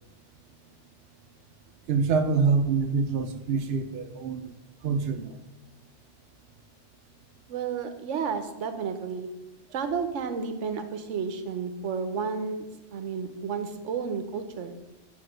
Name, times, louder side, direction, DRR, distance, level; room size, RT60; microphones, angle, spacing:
voice 1, 1.9-4.4 4.8-5.3, right 5 dB, 65° right, 7 dB, 0.8 m, -25 dB
voice 2, 7.5-9.3 9.7-14.8, right 6 dB, 85° right, 9 dB, 1.1 m, -32 dB
8.8 x 3.6 x 6.2 m, 1.0 s
omnidirectional pair, 1.2 m